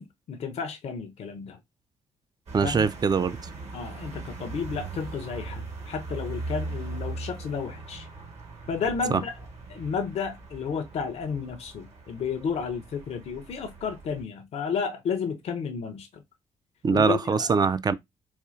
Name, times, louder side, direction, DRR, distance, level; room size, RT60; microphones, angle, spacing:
voice 1, 0.0-1.6 2.6-2.9 3.7-8.1 8.7-9.3 9.7-16.1 16.9-17.5, left 6 dB, 55° left, 0.6 m, -32 dB
voice 2, 2.5-3.4 9.1-9.2 16.8-17.9, right 5 dB, 30° right, 0.4 m, -23 dB
sound 1, 2.5-14.2, right 3 dB, 55° right, 1.4 m, -40 dB
4.2 x 2.4 x 2.4 m
hypercardioid pair, 45°, 13 cm